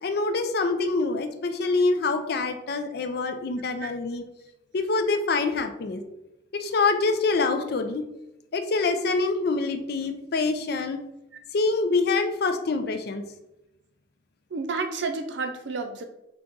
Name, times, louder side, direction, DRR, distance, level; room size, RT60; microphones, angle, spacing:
voice 1, 0.0-4.2 4.7-6.0 6.5-8.0 8.5-11.0 11.5-13.2, left 3 dB, 55° left, 7 dB, 0.4 m, -25 dB
voice 2, 14.5-16.0, right 4 dB, 65° right, 7 dB, 0.5 m, -30 dB
4.0 x 2.9 x 3.5 m, 0.91 s
head